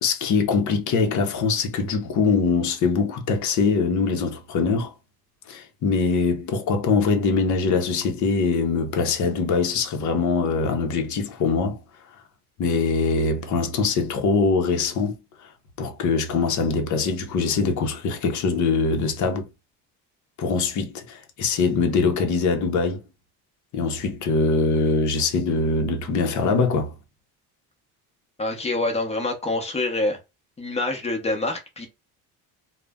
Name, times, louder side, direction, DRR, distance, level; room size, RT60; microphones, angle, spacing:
voice 1, 0.0-4.9 5.5-11.8 12.6-15.2 15.4-15.5 15.8-19.5 20.4-23.0 23.7-26.9, left 4 dB, 50° left, 0.7 m, -23 dB
voice 2, 28.4-30.2 30.6-31.9, left 2 dB, 15° left, 0.8 m, -26 dB
2.4 x 2.1 x 3.4 m
cardioid pair, 140°, 39 cm